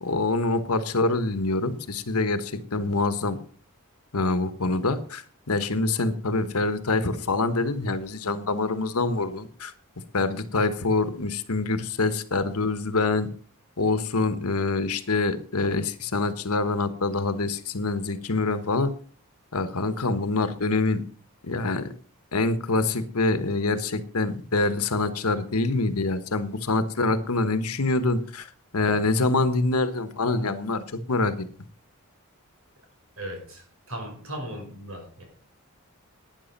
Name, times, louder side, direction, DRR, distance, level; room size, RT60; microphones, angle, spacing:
voice 1, 0.0-3.4 4.1-9.7 10.1-13.3 13.8-18.9 19.5-21.0 21.4-21.9 22.3-28.5 28.7-31.5, left 3 dB, 85° left, 12 dB, 1.3 m, -25 dB
voice 2, 33.2-35.2, right 1 dB, 70° right, 3 dB, 5.6 m, -37 dB
11.5 x 9.9 x 5.3 m, 0.42 s
head